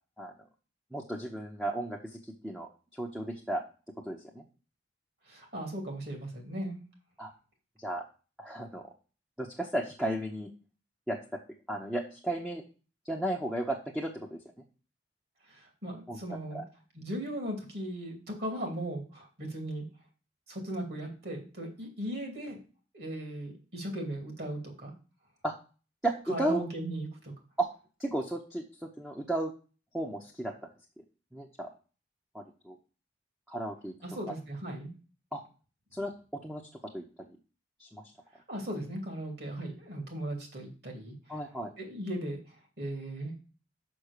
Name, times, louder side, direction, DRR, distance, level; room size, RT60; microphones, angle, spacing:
voice 1, 0.9-3.6 4.1-4.4 7.2-7.3 7.8-8.0 8.4-8.8 9.4-10.5 11.1-11.2 11.7-12.6 13.0-14.4 16.1-16.2 16.5-16.6 25.4-25.5 26.0-26.6 27.6-27.7 28.0-29.5 29.9-30.5 31.3-31.7 32.3-32.8 33.5-33.9 35.3-35.4 35.9-36.1 36.4-36.6 36.9-37.4 37.8-38.0 41.3-41.7, right 1 dB, ahead, -1 dB, 0.8 m, -34 dB
voice 2, 5.3-6.8 15.5-16.6 16.9-19.8 20.5-22.6 22.9-24.9 26.3-27.3 34.0-34.9 38.5-41.1 41.8-42.4 42.8-43.3, right 1 dB, 55° right, 2 dB, 2.6 m, -37 dB
6.1 x 6.0 x 6.6 m, 0.36 s
head